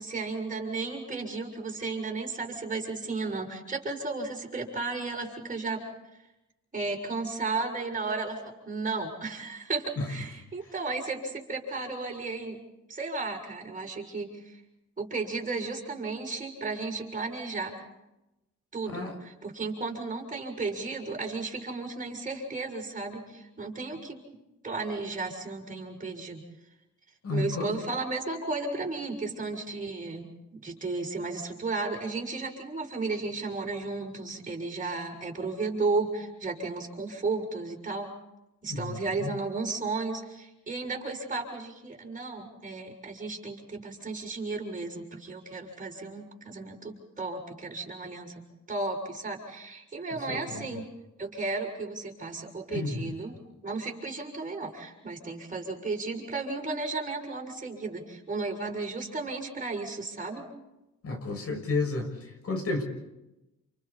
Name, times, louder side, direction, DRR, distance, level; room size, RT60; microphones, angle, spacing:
voice 1, 0.0-5.8 6.7-12.6 12.9-14.6 15.0-17.9 18.7-24.2 24.6-26.4 27.3-38.1 38.6-48.3 48.7-50.9 51.2-53.3 53.6-60.4, right 3 dB, 25° right, 1 dB, 6.7 m, -34 dB
voice 2, 27.2-27.8 38.7-39.3 50.3-50.6 52.7-53.1 61.0-62.8, left 3 dB, 50° left, 3 dB, 6.6 m, -32 dB
29.0 x 29.0 x 4.3 m, 0.95 s
cardioid pair, 90°, 30 cm